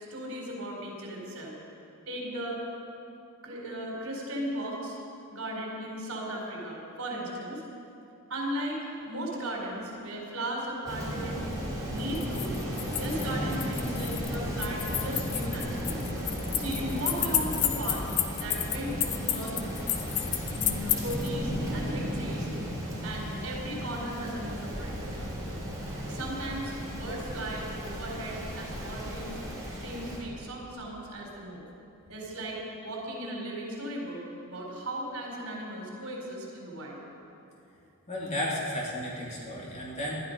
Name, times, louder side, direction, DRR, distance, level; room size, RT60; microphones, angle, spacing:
voice 1, 0.1-1.5 2.1-2.6 3.4-5.0 5.3-7.6 8.3-11.5 11.9-12.6 12.9-16.1 16.6-18.1 18.4-19.6 20.5-22.5 23.0-25.0 26.1-29.4 29.7-31.6 32.1-37.0, right 1 dB, 70° right, -2 dB, 4.2 m, -36 dB
Rain, 10.8-30.2, equal, 15° right, 3.6 m, -35 dB
sound 1, 12.0-21.3, left 11 dB, 85° left, 0.9 m, -32 dB
voice 2, 38.1-40.1, left 1 dB, 30° left, -4 dB, 2.8 m, -33 dB
19.5 x 12.5 x 5.3 m, 2.7 s
head